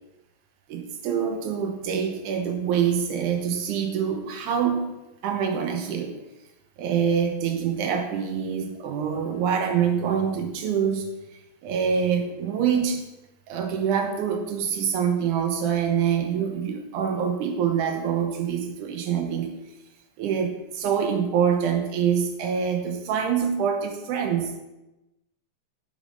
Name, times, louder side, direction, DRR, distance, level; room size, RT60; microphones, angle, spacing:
voice 1, 0.7-4.9 5.2-6.1 6.8-11.1 11.6-13.0 13.5-19.6 20.2-24.6, right 7 dB, 80° right, 3 dB, 2.5 m, -25 dB
8.9 x 7.3 x 3.9 m, 0.99 s
omnidirectional pair, 3.5 m